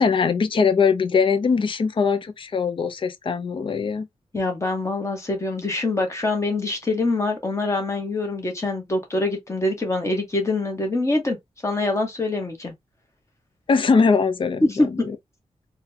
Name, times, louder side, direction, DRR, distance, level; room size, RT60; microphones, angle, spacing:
voice 1, 0.0-4.1 13.7-15.2, left 5 dB, 45° left, 0.5 m, -21 dB
voice 2, 4.3-11.4 11.6-12.7 14.6-15.1, left 2 dB, 25° left, 1.1 m, -24 dB
3.7 x 2.3 x 2.6 m
wide cardioid pair, 135°, 12 cm